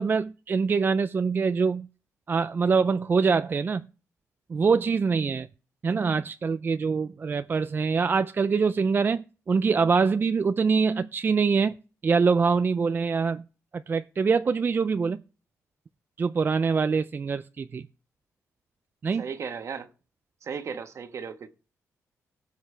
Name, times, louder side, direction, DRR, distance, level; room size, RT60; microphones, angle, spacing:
voice 1, 0.0-1.9 2.3-3.9 4.5-5.5 5.8-11.7 12.0-13.4 13.7-15.2 16.2-17.8 19.0-19.2, right 5 dB, 35° right, 0.4 m, -24 dB
voice 2, 19.2-19.9 20.4-21.5, right 6 dB, 55° right, 1.3 m, -35 dB
17.5 x 6.5 x 3.3 m
cardioid pair, 95°, 6 cm